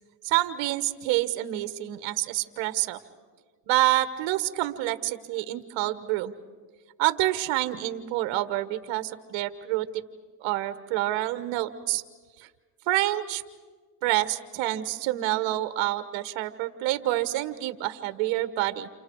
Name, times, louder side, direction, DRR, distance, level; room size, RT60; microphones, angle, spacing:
voice 1, 0.2-3.0 3.7-6.3 7.0-9.9 10.4-12.0 12.4-12.5 12.9-13.4 14.0-18.9, right 16 dB, 65° right, 11 dB, 1.5 m, -27 dB
30.0 x 29.5 x 4.8 m, 1.4 s
supercardioid pair, 95°, 49 cm